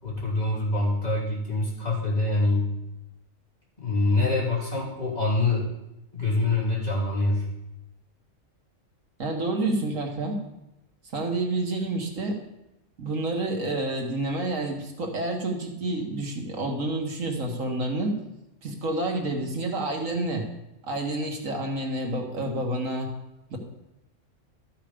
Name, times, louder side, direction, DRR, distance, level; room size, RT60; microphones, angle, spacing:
voice 1, 0.0-2.7 3.8-5.7 6.1-7.5, left 2 dB, 30° left, -6 dB, 3.2 m, -25 dB
voice 2, 9.2-10.4 11.1-12.4 13.0-18.1 18.6-20.5 20.8-23.1 23.5-23.6, right 2 dB, 80° right, 1 dB, 1.9 m, -29 dB
13.0 x 5.7 x 5.1 m, 0.91 s
omnidirectional pair, 1.3 m